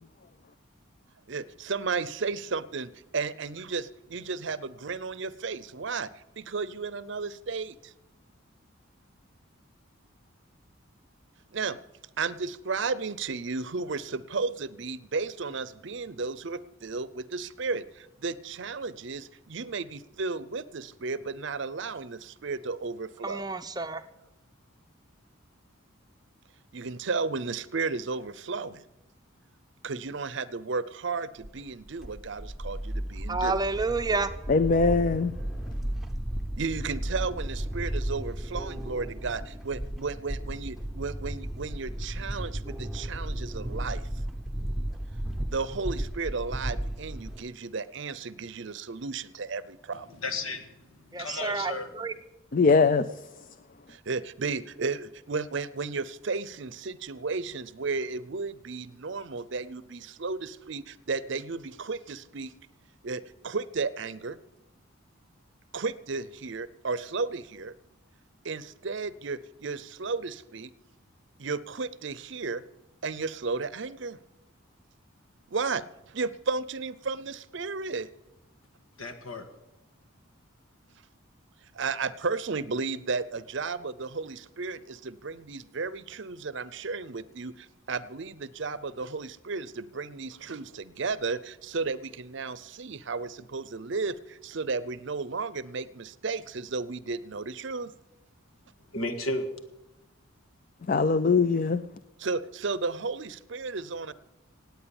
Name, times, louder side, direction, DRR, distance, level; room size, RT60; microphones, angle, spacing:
voice 1, 1.3-7.8 11.5-11.8 12.2-23.4 26.7-28.8 29.8-33.6 36.6-44.1 45.5-50.1 53.9-62.5 63.0-64.4 65.7-67.7 68.4-70.7 71.4-72.6 73.0-74.2 75.5-78.1 81.7-97.9 102.2-104.1, right 4 dB, 55° right, 0.6 m, -33 dB
voice 2, 23.2-24.0 33.3-34.3 51.1-52.1, right 3 dB, 20° right, 0.6 m, -29 dB
sound 1, 31.4-47.4, right 1 dB, ahead, 0.9 m, -34 dB
voice 3, 34.5-35.4 52.5-53.1 100.9-101.8, left 4 dB, 40° left, 0.4 m, -22 dB
voice 4, 50.2-50.6 51.2-51.9 79.0-79.4 98.9-99.5, left 2 dB, 75° left, 1.8 m, -32 dB
18.0 x 9.2 x 7.1 m
head